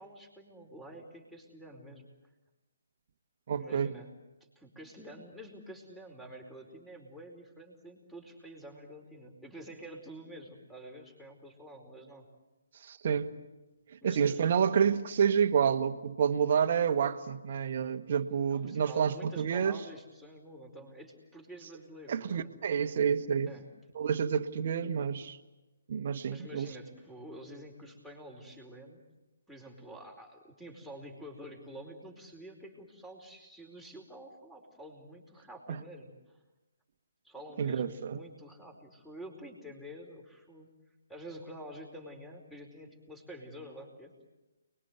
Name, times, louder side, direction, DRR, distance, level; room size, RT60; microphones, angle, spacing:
voice 1, 0.0-2.0 3.6-4.1 4.5-12.2 14.0-14.4 18.5-22.5 23.4-23.7 26.3-29.0 29.5-36.4 37.2-40.7 41.1-44.1, equal, ahead, 3 dB, 4.7 m, -48 dB
voice 2, 3.5-3.9 12.8-13.3 14.0-19.8 22.1-23.5 24.0-25.4 25.9-26.7 35.7-35.8 37.6-38.2, right 7 dB, 45° right, 10 dB, 1.6 m, -29 dB
29.5 x 21.5 x 8.1 m, 1.1 s
figure-of-eight pair, 140°, 0 cm